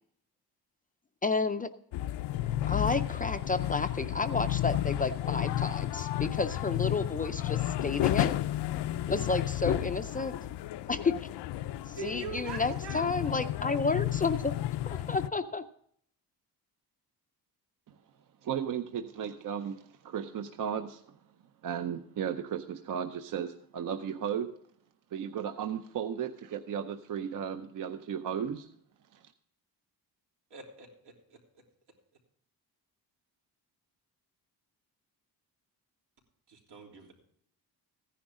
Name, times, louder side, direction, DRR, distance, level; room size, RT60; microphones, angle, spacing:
voice 1, 1.2-1.7 2.7-8.3 9.1-10.3 10.9-11.3 11.9-14.5 14.9-15.6, left 4 dB, 20° left, 9 dB, 0.4 m, -31 dB
sound 1, 1.9-15.3, left 14 dB, 85° left, 0.6 m, -32 dB
voice 2, 12.0-13.2 30.5-31.1 36.5-37.1, right 4 dB, 85° right, 0 dB, 3.4 m, -42 dB
voice 3, 18.4-21.2 21.6-24.5 25.1-28.7 29.1-29.3, right 8 dB, 55° right, 8 dB, 0.7 m, -35 dB
15.0 x 10.0 x 3.7 m, 0.66 s
wide cardioid pair, 170°, 40 cm